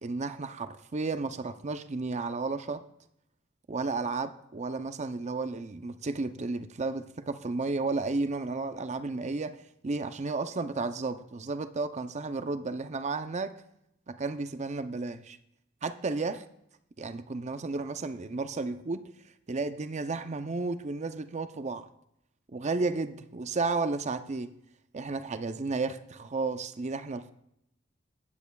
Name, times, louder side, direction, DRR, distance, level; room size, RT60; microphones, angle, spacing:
voice 1, 0.0-2.8 3.7-13.5 14.1-15.4 15.8-16.4 17.0-19.0 19.5-21.9 22.5-24.5 24.9-27.3, right 3 dB, 35° right, 11 dB, 0.5 m, -33 dB
15.5 x 9.0 x 2.3 m, 0.79 s
head